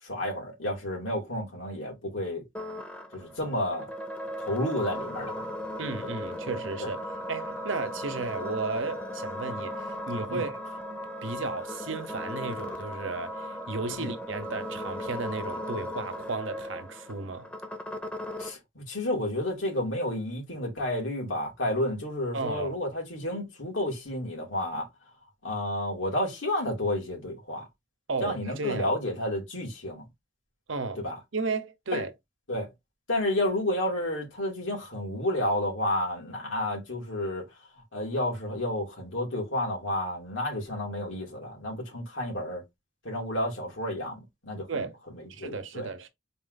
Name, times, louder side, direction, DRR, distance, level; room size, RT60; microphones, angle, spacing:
voice 1, 0.0-2.4 3.1-3.9 4.4-5.5 6.0-6.1 6.8-6.9 10.3-10.4 14.0-14.1 18.4-24.9 25.4-27.7 28.2-30.1 31.0-31.2 31.9-32.0 32.5-32.7 33.1-37.5 37.9-42.6 43.0-45.9, left 1 dB, 90° left, 2.3 m, -31 dB
sound 1, 2.5-18.5, left 1 dB, 5° left, 0.7 m, -37 dB
voice 2, 5.8-7.0 7.3-10.6 11.2-17.5 22.3-22.8 28.1-28.9 30.7-31.0 31.3-32.1 44.7-45.0 45.3-46.1, right 4 dB, 85° right, 0.8 m, -34 dB
4.2 x 2.6 x 3.9 m
head